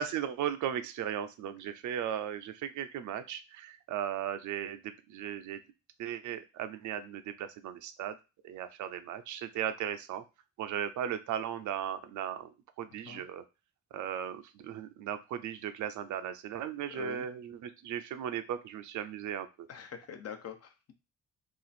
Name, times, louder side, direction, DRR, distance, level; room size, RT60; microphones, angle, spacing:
voice 1, 0.0-4.8 5.1-5.6 6.0-8.2 8.4-10.2 10.6-12.5 12.8-13.4 13.9-19.7, right 9 dB, 75° right, 10 dB, 0.5 m, -36 dB
voice 2, 16.9-17.3 19.7-21.0, left 7 dB, 55° left, 7 dB, 0.8 m, -44 dB
2.8 x 2.5 x 4.1 m, 0.28 s
cardioid pair, 90°, 30 cm